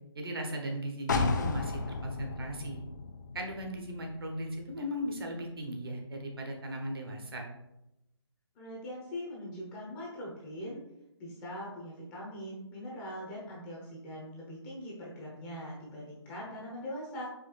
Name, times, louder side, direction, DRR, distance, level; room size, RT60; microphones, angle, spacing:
voice 1, 0.1-2.8 3.3-7.5, equal, 55° right, 2 dB, 1.0 m, -37 dB
sound 1, 1.1-4.8 5.2-5.3, left 3 dB, 40° left, 0.4 m, -34 dB
voice 2, 8.5-10.8 11.2-17.3, equal, 15° left, -5 dB, 0.8 m, -42 dB
4.8 x 3.1 x 3.2 m, 0.88 s
figure-of-eight pair, 145°, 15 cm